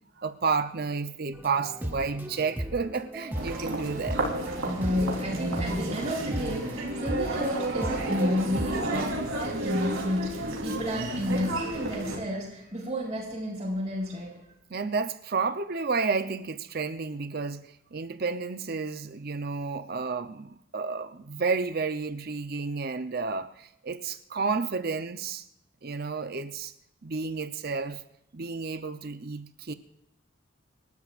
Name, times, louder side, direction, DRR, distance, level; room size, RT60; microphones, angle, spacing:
voice 1, 0.2-4.2 14.7-25.4 25.8-26.7 27.0-28.0 28.3-29.7, right 4 dB, 45° right, 0.7 m, -31 dB
sound 1, 1.3-9.1, equal, 10° right, 1.0 m, -37 dB
Human voice, 3.3-12.2, right 2 dB, 90° right, 3.7 m, -31 dB
voice 2, 4.6-14.4, left 1 dB, 25° right, 4.5 m, -31 dB
27.5 x 13.0 x 2.5 m
head